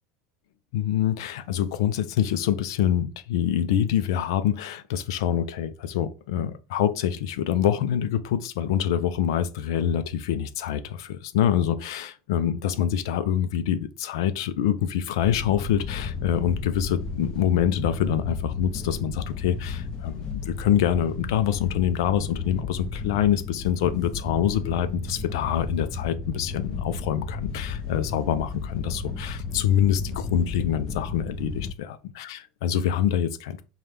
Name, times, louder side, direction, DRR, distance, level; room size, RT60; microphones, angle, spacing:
voice 1, 0.7-33.6, left 10 dB, 80° left, 0.5 m, -25 dB
Wind / Boat Water vehicle, 15.2-31.7, left 4 dB, 35° left, 0.8 m, -33 dB
5.5 x 2.3 x 3.3 m
supercardioid pair, 145°, 2 cm